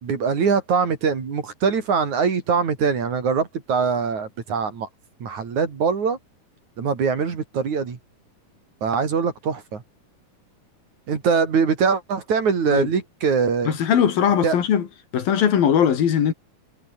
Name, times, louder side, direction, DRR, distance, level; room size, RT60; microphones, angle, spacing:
voice 1, 0.0-4.9 5.2-6.2 6.8-8.0 8.8-9.8 11.1-13.8 14.4-14.6, right 5 dB, 55° right, 4.5 m, -22 dB
voice 2, 13.7-14.9 15.1-16.3, left 8 dB, 75° left, 4.3 m, -19 dB
omnidirectional pair, 4.2 m